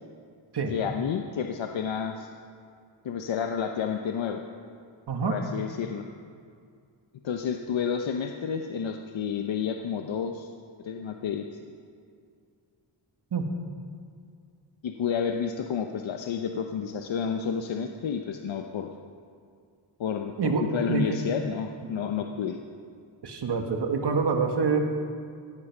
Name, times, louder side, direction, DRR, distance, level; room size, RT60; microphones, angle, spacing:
voice 1, 0.7-2.3 3.0-4.4 5.2-6.0 7.2-10.5 10.8-11.4 14.8-18.9 20.0-22.6, left 7 dB, 75° left, 4 dB, 0.9 m, -30 dB
voice 2, 20.4-21.2 23.2-24.8, right 4 dB, 60° right, 4 dB, 1.9 m, -26 dB
16.5 x 14.0 x 6.1 m, 2.3 s
wide cardioid pair, 130°, 46 cm